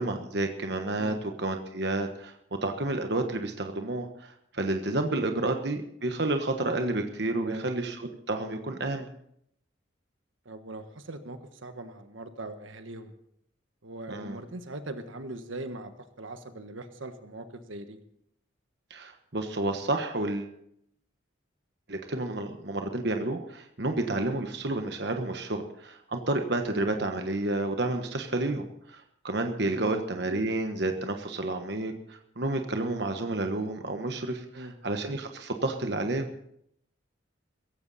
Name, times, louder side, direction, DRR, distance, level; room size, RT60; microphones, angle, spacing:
voice 1, 0.0-2.3 2.6-9.1 14.1-14.4 18.9-20.5 21.9-36.3, right 2 dB, 60° right, 5 dB, 1.3 m, -30 dB
voice 2, 7.3-7.6 10.4-13.1 13.8-15.9 16.2-18.0 29.7-29.9 34.5-34.7, right 2 dB, 90° right, 8 dB, 1.4 m, -40 dB
16.5 x 15.0 x 4.2 m, 0.72 s
head